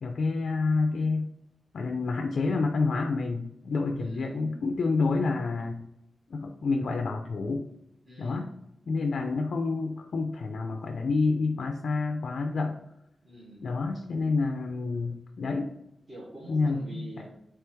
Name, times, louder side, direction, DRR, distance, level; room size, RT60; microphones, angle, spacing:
voice 1, 0.0-1.3 1.7-5.8 6.3-7.6 8.2-8.5 8.9-12.8 13.6-15.7 16.5-17.0, left 3 dB, 80° left, 4 dB, 0.3 m, -28 dB
voice 2, 3.9-4.4 8.0-8.5 13.2-14.0 16.1-17.3, right 1 dB, 30° right, -7 dB, 1.3 m, -46 dB
3.3 x 3.2 x 4.5 m, 0.83 s
wide cardioid pair, 125°, 0 cm